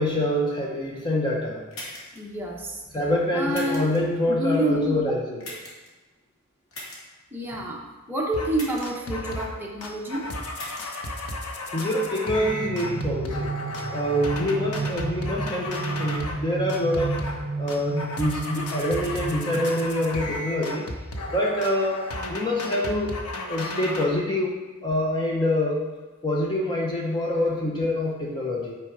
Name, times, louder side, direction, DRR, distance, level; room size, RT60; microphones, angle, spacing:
voice 1, 0.0-1.6 2.9-5.5 11.7-13.6 13.9-17.2 17.6-20.9 21.3-22.0 22.3-23.2 23.5-25.8 26.2-28.7, left 1 dB, 20° left, -2 dB, 0.7 m, -26 dB
sound 1, 1.7-2.2 3.5-4.0 5.4-5.9 6.7-7.0 8.5-9.0 10.5-10.8, left 1 dB, 70° left, 2.1 m, -39 dB
voice 2, 2.1-2.8 3.3-3.9 4.2-5.0 7.3-7.8 8.1-10.2, right 1 dB, 10° right, -3 dB, 1.1 m, -28 dB
sound 2, 8.3-8.5 8.8-9.6 9.8-16.4 16.7-17.4 17.7-24.1, left 1 dB, 90° left, 1.0 m, -34 dB
sound 3, 12.3-20.2, right 3 dB, 40° right, 0.4 m, -32 dB
9.0 x 4.5 x 4.8 m, 1.3 s
head